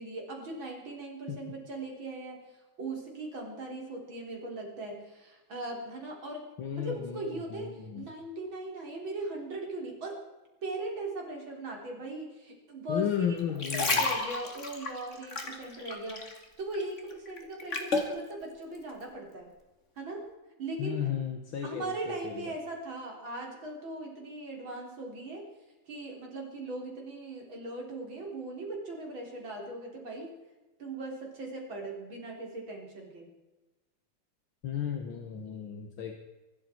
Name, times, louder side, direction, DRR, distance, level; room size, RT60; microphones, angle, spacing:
voice 1, 0.0-2.5 2.8-10.2 10.6-13.4 13.7-16.3 16.6-19.5 20.0-20.3 20.6-21.1 21.6-25.5 25.9-30.3 30.8-33.3, right 2 dB, 70° right, 0 dB, 4.8 m, -39 dB
voice 2, 6.6-8.1 12.9-14.1 20.8-22.5 34.6-36.2, left 8 dB, 75° left, 4 dB, 2.3 m, -34 dB
sound 1, 13.4-16.4 16.7-18.1 18.7-18.9, left 3 dB, 35° left, 2.6 m, -31 dB
24.5 x 13.0 x 4.6 m, 1.1 s
omnidirectional pair, 2.2 m